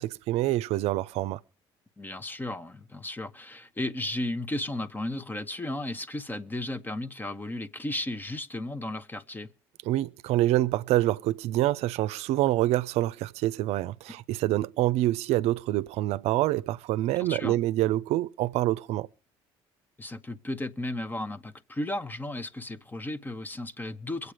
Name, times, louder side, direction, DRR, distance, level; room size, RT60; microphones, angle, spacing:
voice 1, 0.0-1.4 9.9-19.1, right 15 dB, 75° right, 0.6 m, -26 dB
voice 2, 2.0-9.5 17.2-17.6 20.0-24.3, left 1 dB, 15° left, 1.0 m, -34 dB
22.5 x 8.2 x 5.0 m
supercardioid pair, 85°, 11 cm